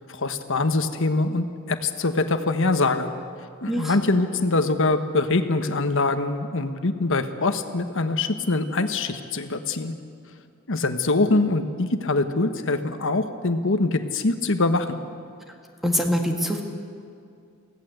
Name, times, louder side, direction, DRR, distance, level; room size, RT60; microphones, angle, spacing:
voice 1, 0.1-3.1 3.6-9.9 10.7-15.0, left 2 dB, 65° left, 8 dB, 1.3 m, -23 dB
voice 2, 3.7-4.0 15.5-15.6 15.8-16.6, equal, ahead, 2 dB, 2.1 m, -24 dB
24.0 x 17.0 x 8.1 m, 2.4 s
head